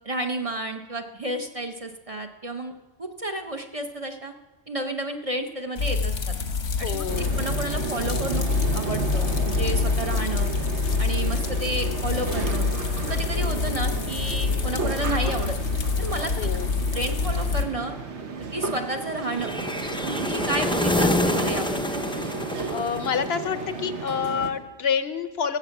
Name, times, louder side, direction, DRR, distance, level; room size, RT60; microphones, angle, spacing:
voice 1, 0.0-2.7 3.0-4.3 4.7-6.3 6.8-7.0 7.3-8.5 8.7-10.5 11.0-12.7 13.0-15.6 16.0-16.5 16.9-18.0 18.5-19.5 20.0-22.1, right 1 dB, 35° right, 5 dB, 0.8 m, -31 dB
sound 1, 5.8-17.6, left 4 dB, 90° left, 1.4 m, -26 dB
voice 2, 6.8-7.3 16.3-16.7 22.7-25.6, left 7 dB, 65° left, 11 dB, 0.9 m, -28 dB
sound 2, 7.1-24.5, right 4 dB, 70° right, 1.4 m, -33 dB
Magic Wings - Soft, 19.3-23.5, left 1 dB, 5° left, 0.5 m, -26 dB
16.0 x 7.9 x 7.1 m, 1.2 s
omnidirectional pair, 1.2 m